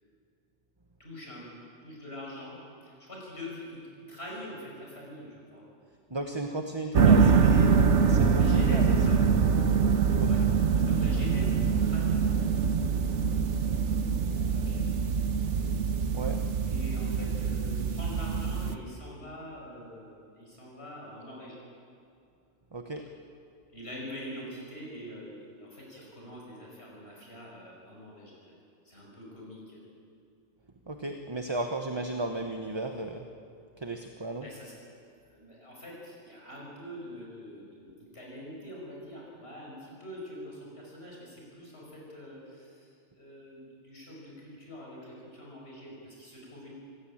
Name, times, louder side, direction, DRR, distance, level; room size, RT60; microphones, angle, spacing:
voice 1, 1.0-1.5 1.8-5.6 7.0-7.9 8.3-9.2 10.2-10.4 10.8-12.8 13.4-13.9 14.5-15.0 16.7-21.6 23.7-28.3 28.8-29.8 34.4-34.7 35.3-46.7, equal, 65° left, -3 dB, 5.8 m, -44 dB
voice 2, 6.1-7.7 8.1-8.9 9.6-9.8 10.1-10.5 16.1-16.4 22.7-23.0 30.9-33.3 33.8-34.5, right 2 dB, 25° right, 5 dB, 1.1 m, -35 dB
sound 1, 6.9-18.8, right 6 dB, 85° right, 1.3 m, -24 dB
25.5 x 16.0 x 8.7 m, 2.5 s
omnidirectional pair, 1.2 m